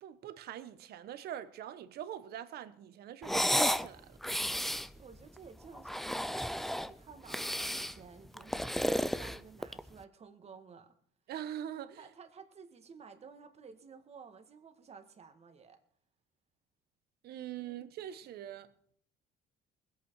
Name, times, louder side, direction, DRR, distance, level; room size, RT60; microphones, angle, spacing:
voice 1, 0.0-4.2 11.3-12.0 17.2-18.7, right 10 dB, 70° right, 1.1 m, -43 dB
sound 1, 3.2-3.9 4.2-4.9 5.7-6.9 7.3-8.0 8.4-9.9, equal, ahead, 0.5 m, -32 dB
voice 2, 5.0-10.9 12.0-15.8 17.6-17.8, right 5 dB, 40° right, 1.7 m, -54 dB
20.5 x 8.5 x 4.7 m
cardioid pair, 110°, 17 cm